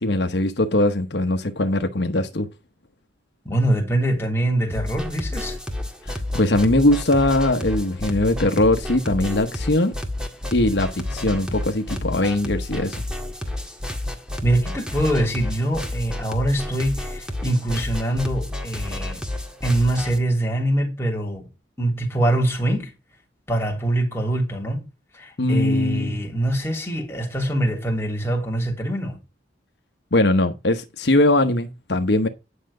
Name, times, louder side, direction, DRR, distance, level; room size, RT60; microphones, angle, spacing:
voice 1, 0.0-2.5 6.1-9.9 10.5-13.0 25.4-26.2 30.1-32.3, left 1 dB, 65° left, 1.1 m, -21 dB
voice 2, 3.4-5.6 14.4-19.2 19.6-21.5 21.8-22.9 23.5-24.9 25.1-29.2, right 1 dB, 15° left, 3.0 m, -23 dB
sound 1, 4.7-20.2, left 1 dB, 5° right, 1.8 m, -30 dB
10.0 x 6.5 x 4.9 m
head